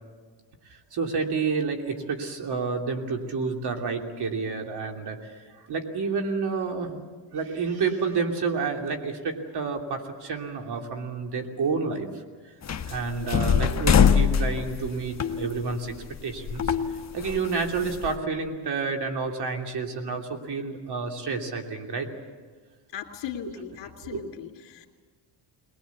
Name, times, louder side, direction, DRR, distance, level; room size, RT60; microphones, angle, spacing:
voice 1, 0.7-5.3 5.6-7.0 7.3-12.1 12.8-15.9 16.2-16.7 17.1-22.1 23.4-23.5 24.0-24.2, right 4 dB, 55° right, 3 dB, 3.0 m, -29 dB
sound 1, 12.6-16.2 16.5-18.2, left 7 dB, 35° left, 1.4 m, -23 dB
voice 2, 22.9-24.9, left 9 dB, 65° left, 2 dB, 3.0 m, -38 dB
21.0 x 20.5 x 8.4 m, 1.5 s
cardioid pair, 110°, 46 cm